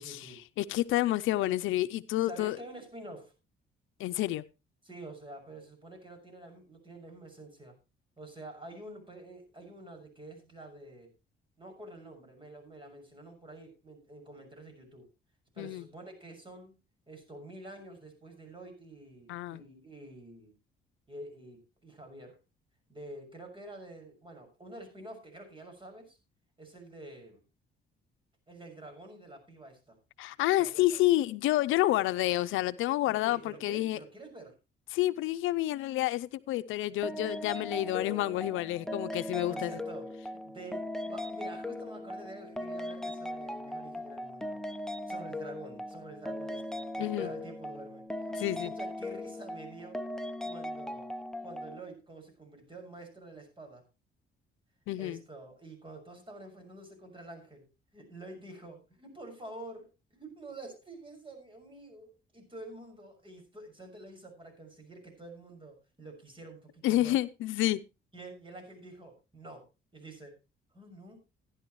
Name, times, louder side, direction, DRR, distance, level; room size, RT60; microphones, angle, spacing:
voice 1, 0.0-0.4 2.2-3.3 4.8-7.7 8.2-11.1 11.6-15.1 15.5-16.7 17.1-20.5 21.1-22.4 22.9-26.2 26.6-27.4 28.5-30.0 30.6-31.0 33.0-34.5 39.3-40.1 40.4-44.6 45.1-50.0 50.4-51.1 51.4-53.8 55.0-57.7 57.9-67.2 68.1-69.6 69.9-70.4 70.7-71.2, right 2 dB, 25° right, 6.3 m, -48 dB
voice 2, 0.6-2.6 4.0-4.4 15.6-15.8 19.3-19.6 30.2-34.0 34.9-39.8 47.0-47.3 48.4-48.7 54.9-55.2 66.8-67.8, left 15 dB, 90° left, 0.6 m, -29 dB
sound 1, 37.0-51.8, left 1 dB, 5° left, 0.9 m, -39 dB
15.5 x 11.0 x 3.1 m
cardioid pair, 90°, 20 cm